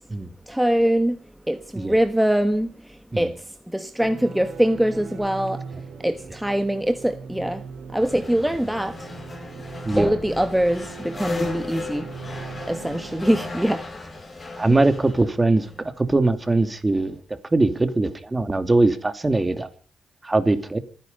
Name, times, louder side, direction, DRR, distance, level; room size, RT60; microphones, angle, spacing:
voice 1, 0.5-1.2 1.5-2.7 3.2-3.3 3.7-5.6 6.0-7.6 7.9-9.0 10.0-12.1 12.7-13.8 14.7-14.8, right 1 dB, 5° right, 1.5 m, -22 dB
sound 1, 4.0-13.3, right 5 dB, 80° right, 3.5 m, -40 dB
sound 2, 8.0-16.6, left 3 dB, 40° left, 5.6 m, -36 dB
voice 2, 14.6-17.2 17.5-19.7 20.2-20.8, right 2 dB, 25° right, 2.7 m, -21 dB
26.0 x 10.0 x 5.5 m
supercardioid pair, 45°, 0 cm